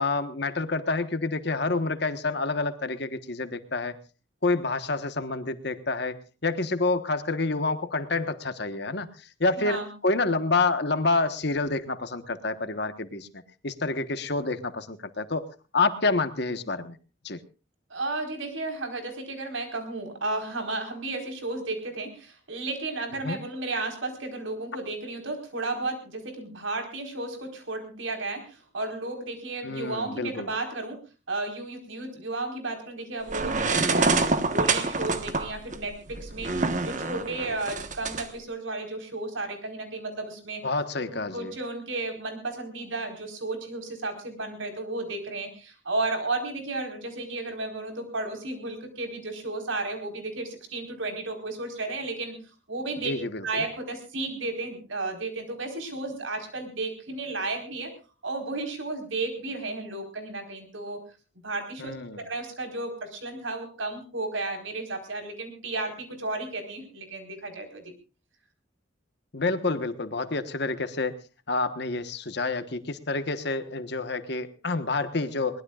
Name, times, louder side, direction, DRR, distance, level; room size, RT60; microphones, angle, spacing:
voice 1, 0.0-4.0 4.4-15.4 15.7-17.0 17.2-17.4 23.1-23.4 29.6-30.5 40.6-41.5 53.0-53.6 61.8-62.2 69.3-71.2 71.5-75.6, left 3 dB, 55° left, 10 dB, 1.3 m, -28 dB
voice 2, 9.6-9.9 17.9-31.0 31.3-40.6 41.1-52.3 52.7-53.1 53.4-57.9 58.2-61.0 61.4-67.9, right 2 dB, 80° right, 5 dB, 4.6 m, -33 dB
sound 1, 33.3-38.2, right 3 dB, 40° right, 1.3 m, -26 dB
22.0 x 20.0 x 2.5 m, 0.34 s
head